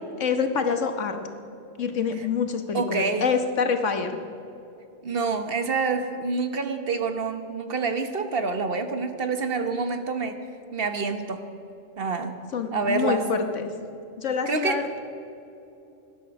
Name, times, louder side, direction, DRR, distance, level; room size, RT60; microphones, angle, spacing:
voice 1, 0.2-1.2 1.8-4.2 12.5-13.7 14.2-15.0, left 5 dB, 85° left, 6 dB, 1.6 m, -26 dB
voice 2, 2.7-3.2 5.0-10.4 10.7-11.4 12.0-12.4 12.7-13.3 14.5-14.8, right 4 dB, 55° right, 8 dB, 1.3 m, -27 dB
19.0 x 12.0 x 6.0 m, 2.9 s
omnidirectional pair, 1.2 m